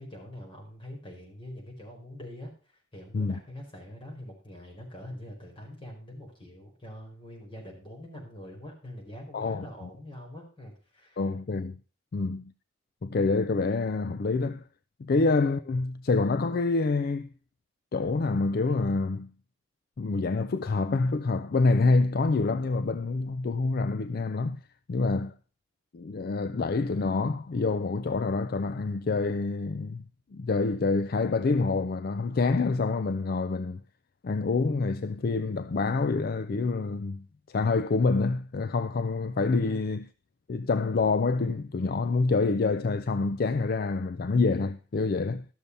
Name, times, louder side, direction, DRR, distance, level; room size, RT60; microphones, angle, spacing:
voice 1, 0.0-2.5 2.9-11.2 12.2-12.3 39.6-39.9, left 1 dB, 25° left, 4.7 m, -44 dB
voice 2, 9.3-9.6 11.2-11.8 12.1-12.4 13.0-14.6 15.0-17.3 17.9-19.3 20.0-24.6 24.9-25.3 25.9-30.0 30.3-33.8 34.2-40.0 40.5-45.5, left 3 dB, 50° left, 0.4 m, -27 dB
13.0 x 6.9 x 5.4 m
head